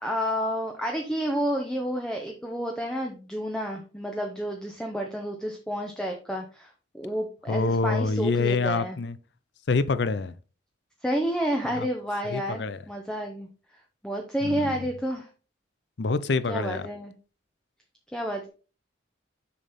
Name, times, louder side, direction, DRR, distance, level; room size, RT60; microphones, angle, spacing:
voice 1, 0.0-9.0 11.0-13.5 14.0-15.3 16.5-17.1 18.1-18.5, equal, 5° left, 0.8 m, -30 dB
voice 2, 7.5-9.2 9.7-10.3 11.7-11.9 12.3-12.8 14.4-14.7 16.0-16.9, left 3 dB, 65° left, 0.6 m, -26 dB
6.8 x 5.3 x 4.2 m
head